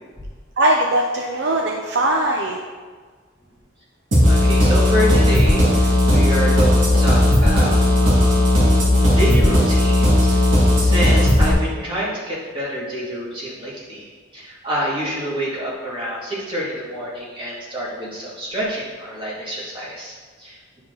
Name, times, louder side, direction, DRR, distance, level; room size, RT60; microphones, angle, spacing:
voice 1, 0.6-2.6, right 1 dB, 60° right, 1 dB, 0.5 m, -20 dB
sound 1, 4.1-11.5, left 1 dB, 75° right, 2.2 m, -15 dB
voice 2, 4.3-8.5 9.1-10.4 10.8-20.8, equal, 25° right, -7 dB, 2.2 m, -27 dB
10.0 x 4.8 x 3.9 m, 1.5 s
head